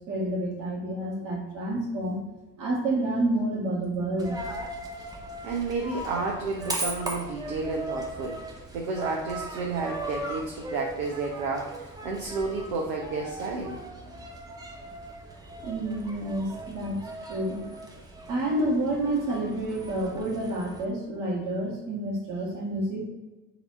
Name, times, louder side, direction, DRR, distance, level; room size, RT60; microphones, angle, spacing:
voice 1, 0.0-2.2 2.6-4.4 15.6-17.6 18.3-23.0, right 1 dB, 40° right, -2 dB, 1.5 m, -29 dB
Coin (dropping), 4.2-20.8, right 2 dB, 10° right, 0.6 m, -38 dB
voice 2, 5.4-13.8, right 3 dB, 55° right, 0 dB, 0.7 m, -31 dB
4.2 x 2.7 x 4.1 m, 1.1 s
figure-of-eight pair, 65°, 49 cm